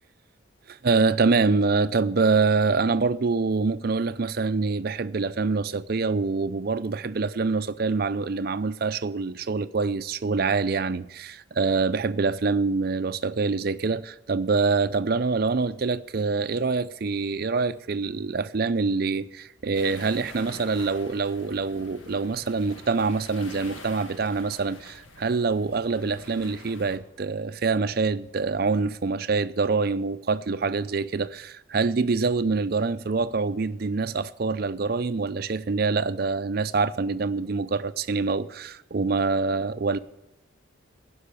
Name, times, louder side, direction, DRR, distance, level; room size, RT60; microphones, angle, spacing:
voice 1, 0.7-40.0, right 4 dB, 50° right, 0.5 m, -25 dB
sound 1, 19.7-27.0, left 2 dB, 75° left, 1.7 m, -46 dB
15.5 x 5.6 x 9.9 m
head